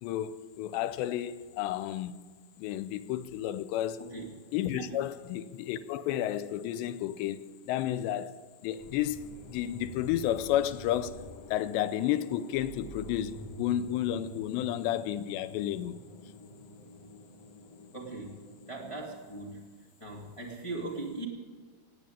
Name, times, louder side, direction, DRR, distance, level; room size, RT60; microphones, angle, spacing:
voice 1, 0.0-2.3 2.6-4.0 4.5-9.2 9.5-11.2 11.5-16.0, left 12 dB, 85° left, 2.9 m, -32 dB
voice 2, 4.0-4.3 4.7-4.9 17.9-18.4 18.7-19.6 20.0-21.3, right 2 dB, 15° left, 1.0 m, -39 dB
sound 1, 8.8-19.2, equal, 45° left, 2.7 m, -48 dB
18.0 x 8.8 x 8.7 m
omnidirectional pair, 5.0 m